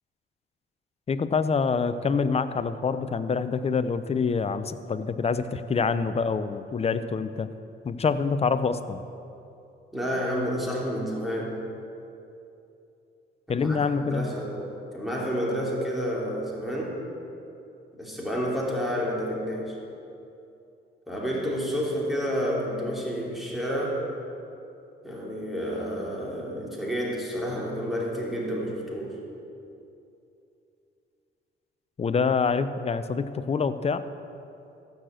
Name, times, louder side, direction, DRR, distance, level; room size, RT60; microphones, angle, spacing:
voice 1, 1.1-7.5 7.8-9.0 13.5-14.3 32.0-34.1, left 5 dB, 30° left, 12 dB, 0.6 m, -26 dB
voice 2, 9.9-11.6 13.5-17.0 18.0-19.8 21.1-24.1 25.0-29.2, equal, ahead, -4 dB, 3.1 m, -30 dB
14.5 x 6.6 x 7.5 m, 2.7 s
cardioid pair, 90°, 20 cm